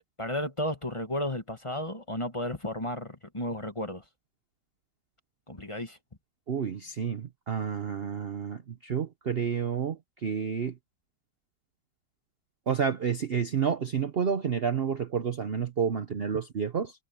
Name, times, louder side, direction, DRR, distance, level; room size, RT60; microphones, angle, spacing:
voice 1, 0.2-4.0 5.5-6.0, left 1 dB, 20° left, 1.6 m, -33 dB
voice 2, 6.5-10.7 12.7-16.9, right 7 dB, 45° right, 0.9 m, -30 dB
omnidirectional pair, 1.7 m